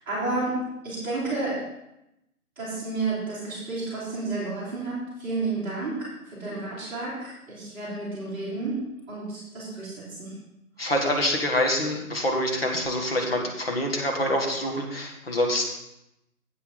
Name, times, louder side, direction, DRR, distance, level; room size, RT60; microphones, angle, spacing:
voice 1, 0.0-1.7 2.6-10.4, right 3 dB, 5° right, -14 dB, 2.2 m, -31 dB
voice 2, 10.8-15.6, left 1 dB, 40° left, 1 dB, 1.6 m, -26 dB
8.5 x 8.3 x 4.0 m, 0.87 s
figure-of-eight pair, 155°, 45 cm